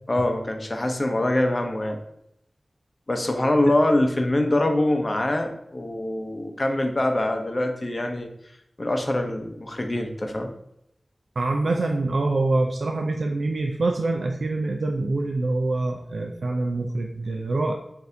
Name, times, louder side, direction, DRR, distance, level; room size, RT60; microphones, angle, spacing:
voice 1, 0.1-2.0 3.1-8.3 8.8-10.5, left 1 dB, 40° left, 4 dB, 0.7 m, -24 dB
voice 2, 11.4-17.7, right 2 dB, 80° right, 2 dB, 0.4 m, -25 dB
6.2 x 2.6 x 2.6 m, 0.77 s
wide cardioid pair, 70°, 0 cm